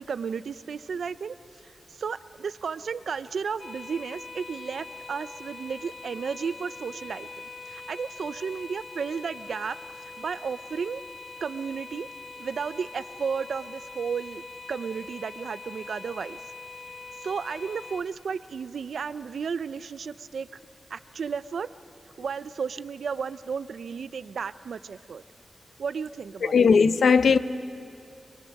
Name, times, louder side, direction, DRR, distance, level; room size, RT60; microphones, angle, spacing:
voice 1, 0.0-1.4 2.0-7.3 7.7-9.8 10.2-11.0 11.4-12.1 12.4-14.4 14.7-16.4 17.2-20.5 20.9-21.7 22.2-25.2 25.8-26.6, right 6 dB, 80° right, 0.5 m, -33 dB
sound 1, 3.6-18.0, left 3 dB, 30° left, 1.1 m, -43 dB
voice 2, 26.4-27.4, left 5 dB, 80° left, 0.6 m, -18 dB
24.0 x 22.0 x 6.4 m
wide cardioid pair, 160°, 0 cm